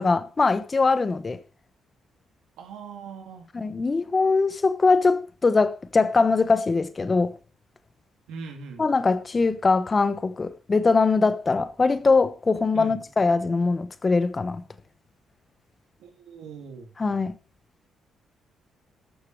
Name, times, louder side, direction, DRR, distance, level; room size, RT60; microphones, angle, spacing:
voice 1, 0.0-1.4 3.5-7.3 8.8-14.6 17.0-17.3, left 4 dB, 30° left, 1.0 m, -22 dB
voice 2, 2.6-3.5 8.3-8.8 12.7-13.0 16.0-16.9, right 5 dB, 90° right, 2.6 m, -40 dB
13.0 x 6.7 x 4.6 m
cardioid pair, 90°, 0 cm